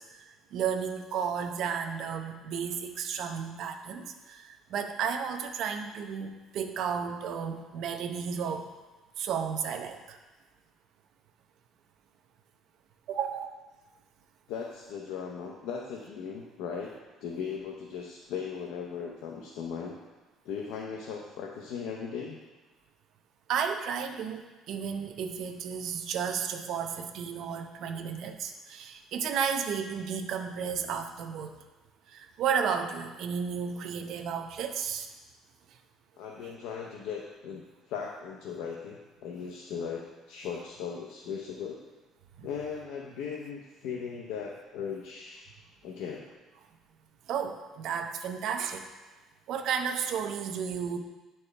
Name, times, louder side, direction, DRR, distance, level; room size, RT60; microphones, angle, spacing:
voice 1, 0.0-8.7 9.2-10.2 13.1-13.5 23.5-31.6 32.1-35.1 35.7-35.8 42.4-42.5 47.3-48.9 49.5-51.0, right 7 dB, 55° right, 5 dB, 0.6 m, -33 dB
voice 2, 14.5-16.9 17.2-20.0 20.4-22.4 36.2-37.6 37.9-41.8 42.4-45.5 45.8-46.2, left 6 dB, 85° left, -1 dB, 0.6 m, -38 dB
9.4 x 4.3 x 3.3 m, 1.2 s
cardioid pair, 160°, 0 cm